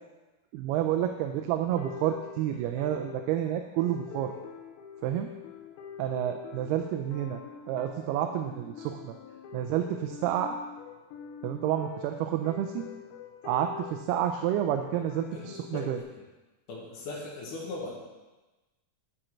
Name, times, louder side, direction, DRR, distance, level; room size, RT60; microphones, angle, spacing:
voice 1, 0.5-4.3 5.0-5.3 6.0-7.4 7.7-9.1 9.5-10.6 11.4-12.9 13.5-16.0, right 11 dB, 90° right, 5 dB, 2.5 m, -29 dB
sound 1, 1.5-16.0, left 8 dB, 80° left, 2.4 m, -44 dB
voice 2, 15.3-16.2 16.7-17.9, left 2 dB, 60° left, -3 dB, 2.6 m, -39 dB
12.0 x 5.0 x 4.5 m, 1.1 s
omnidirectional pair, 4.5 m